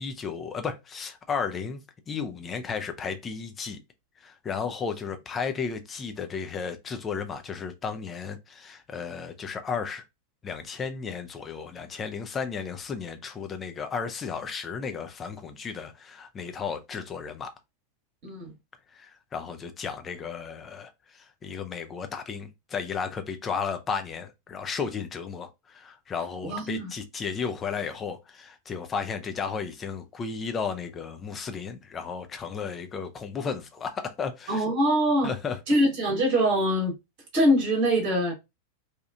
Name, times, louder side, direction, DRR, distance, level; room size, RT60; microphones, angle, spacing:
voice 1, 0.0-1.8 2.1-3.8 4.2-10.0 10.4-17.5 18.9-34.6 35.2-35.6, left 6 dB, 20° left, 0.4 m, -34 dB
voice 2, 18.2-18.5 26.4-26.9 34.5-35.3 35.7-36.9 37.3-38.3, equal, 40° right, 1.1 m, -23 dB
2.8 x 2.3 x 2.2 m
figure-of-eight pair, 90°, 0 cm